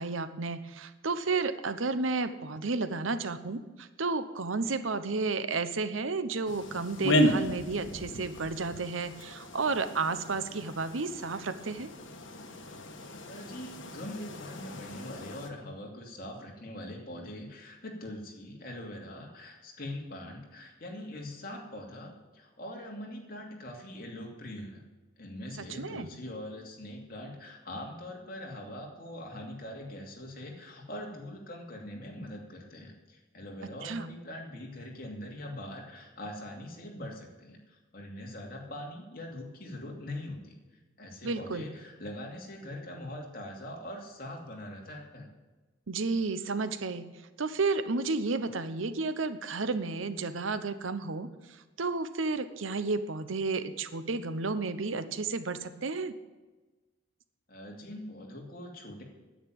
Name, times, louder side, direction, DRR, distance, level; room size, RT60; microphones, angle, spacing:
voice 1, 0.0-11.9 25.7-26.1 33.8-34.1 41.2-41.7 45.9-47.0 47.4-56.1, right 3 dB, 80° right, 12 dB, 0.9 m, -32 dB
sound 1, 6.5-15.5, equal, 75° left, 1.5 m, -34 dB
voice 2, 13.3-24.8 25.2-40.6 41.0-45.3 57.5-59.0, left 1 dB, 45° left, 0 dB, 2.7 m, -42 dB
10.0 x 9.0 x 9.2 m, 1.2 s
head